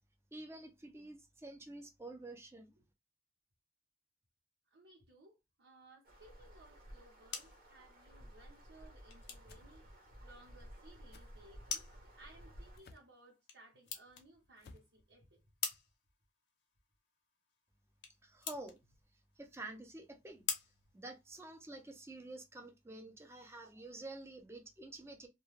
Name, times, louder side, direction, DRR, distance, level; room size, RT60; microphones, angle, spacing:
voice 1, 0.3-2.7 18.2-18.8 19.4-20.4 20.9-25.3, right 2 dB, 15° right, 0.4 m, -49 dB
voice 2, 4.7-9.9 10.2-15.4, right 2 dB, 85° right, 0.8 m, -61 dB
sound 1, 6.0-12.8, equal, 55° right, 0.7 m, -55 dB
sound 2, 6.9-21.8, left 7 dB, 90° left, 0.7 m, -48 dB
sound 3, 9.5-9.7 11.1-11.3 12.8-13.1 14.6-14.9, left 3 dB, 55° left, 0.3 m, -58 dB
2.2 x 2.1 x 3.1 m
head